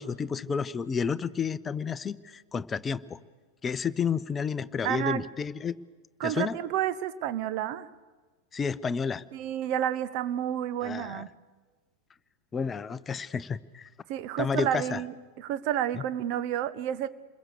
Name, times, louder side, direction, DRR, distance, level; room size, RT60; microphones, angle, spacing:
voice 1, 0.0-3.2 3.6-5.8 6.2-6.6 8.5-9.2 10.8-11.3 12.5-13.9 14.4-15.0, left 6 dB, 20° left, 16 dB, 0.7 m, -31 dB
voice 2, 4.8-5.2 6.2-7.9 9.3-11.3 14.1-17.1, right 11 dB, 45° right, 14 dB, 1.0 m, -30 dB
28.5 x 21.5 x 6.7 m, 1.3 s
figure-of-eight pair, 90°, 0 cm